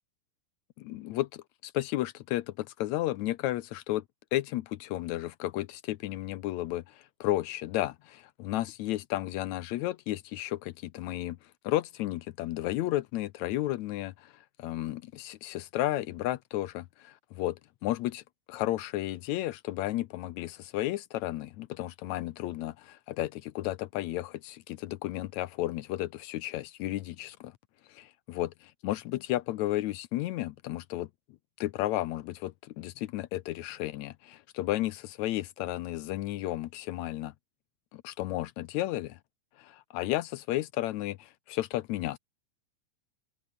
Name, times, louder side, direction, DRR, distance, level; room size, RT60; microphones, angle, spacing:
voice 1, 0.8-4.0 4.3-11.4 11.6-14.3 14.6-18.2 18.5-27.5 27.9-28.5 28.8-31.1 31.6-37.3 37.9-39.2 39.6-42.2, left 15 dB, 80° left, 1.7 m, -33 dB
omnidirectional pair, 4.0 m